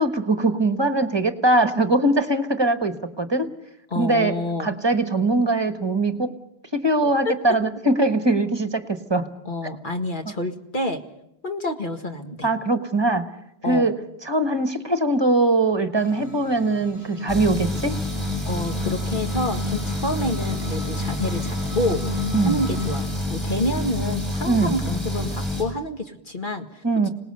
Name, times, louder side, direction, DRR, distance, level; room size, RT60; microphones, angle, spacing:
voice 1, 0.0-3.5 3.9-6.3 6.8-9.3 12.4-13.3 13.6-13.9 14.2-18.0 22.3-22.6 24.5-24.7 26.8-27.1, right 2 dB, 25° right, 9 dB, 1.3 m, -21 dB
voice 2, 3.9-4.7 7.3-7.4 9.5-11.0 11.4-12.5 13.6-13.9 18.5-22.0 22.4-27.1, left 1 dB, 50° left, 5 dB, 1.9 m, -28 dB
sound 1, 16.0-23.0, left 3 dB, 25° left, 8.1 m, -35 dB
sound 2, 17.3-25.6, left 1 dB, ahead, 7.0 m, -28 dB
26.0 x 19.0 x 6.8 m, 0.81 s
omnidirectional pair, 1.1 m